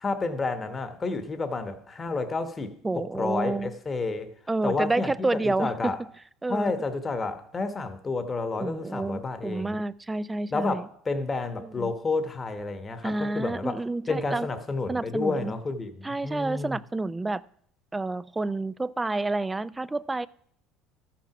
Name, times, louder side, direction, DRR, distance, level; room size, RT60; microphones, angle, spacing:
voice 1, 0.0-4.3 4.6-6.0 6.5-9.8 10.5-13.8 14.1-16.8, left 3 dB, 25° left, 9 dB, 1.0 m, -30 dB
voice 2, 2.8-3.7 4.5-6.0 6.4-6.7 8.6-10.9 11.6-11.9 13.0-14.5 14.9-15.5 16.0-17.4 17.9-20.3, right 2 dB, 15° right, 19 dB, 0.3 m, -29 dB
13.0 x 5.9 x 5.9 m, 0.63 s
supercardioid pair, 95°, 0 cm